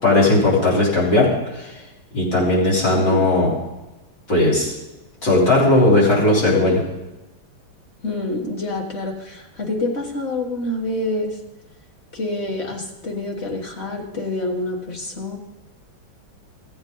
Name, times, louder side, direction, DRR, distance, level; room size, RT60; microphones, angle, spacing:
voice 1, 0.0-1.8 2.1-3.5 4.3-4.7 5.2-6.8, left 2 dB, 55° left, -6 dB, 4.4 m, -17 dB
voice 2, 2.9-3.3 8.0-11.4 12.1-15.4, left 2 dB, 35° left, 1 dB, 1.5 m, -27 dB
16.0 x 8.1 x 3.8 m, 1.1 s
omnidirectional pair, 2.3 m